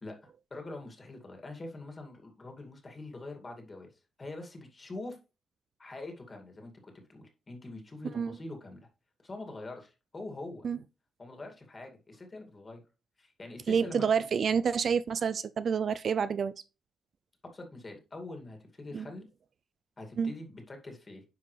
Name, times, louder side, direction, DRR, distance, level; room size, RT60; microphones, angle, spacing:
voice 1, 0.0-3.9 4.2-5.2 5.8-8.9 9.2-10.7 11.2-12.8 13.2-14.2 17.4-19.3 20.0-21.2, left 2 dB, 30° left, 2.3 m, -44 dB
voice 2, 13.7-16.5 18.9-19.1 20.2-20.3, right 6 dB, 55° right, 0.4 m, -28 dB
9.8 x 5.4 x 3.3 m
cardioid pair, 105°, 0 cm